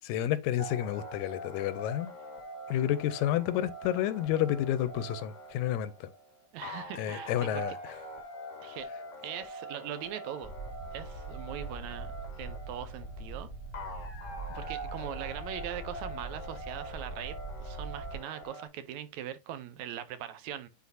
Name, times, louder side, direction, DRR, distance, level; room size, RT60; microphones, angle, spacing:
voice 1, 0.0-2.1 2.7-6.1 6.9-7.7, left 11 dB, 85° left, 2.0 m, -30 dB
sound 1, 0.6-18.7, right 1 dB, 60° left, 0.8 m, -44 dB
voice 2, 6.5-8.0 8.6-8.9 9.2-10.5 10.9-12.1 12.4-13.5 14.5-20.7, right 11 dB, 80° right, 2.0 m, -41 dB
sound 2, 10.4-18.2, right 2 dB, 30° right, 0.7 m, -42 dB
9.4 x 4.1 x 2.7 m
omnidirectional pair, 3.3 m